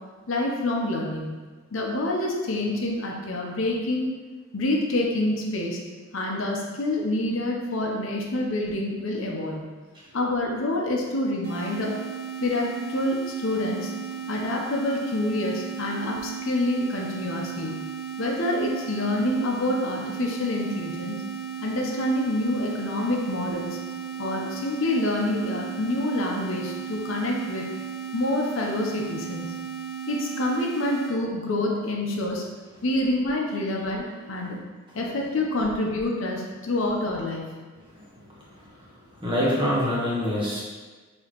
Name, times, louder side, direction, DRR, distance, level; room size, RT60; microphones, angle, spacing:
voice 1, 0.3-1.3 1.7-4.1 4.5-5.8 6.1-9.6 10.1-12.0 12.4-13.9 14.3-17.7 18.2-21.2 21.6-23.8 24.2-27.7 28.1-29.6 30.1-32.4 32.8-34.6 34.9-37.6, left 1 dB, 70° left, -1 dB, 0.7 m, -27 dB
sound 1, 11.4-31.1, right 8 dB, 75° right, 1.2 m, -35 dB
voice 2, 37.9-38.7 39.1-40.6, equal, 25° right, -6 dB, 1.2 m, -27 dB
6.1 x 2.9 x 3.0 m, 1.3 s
head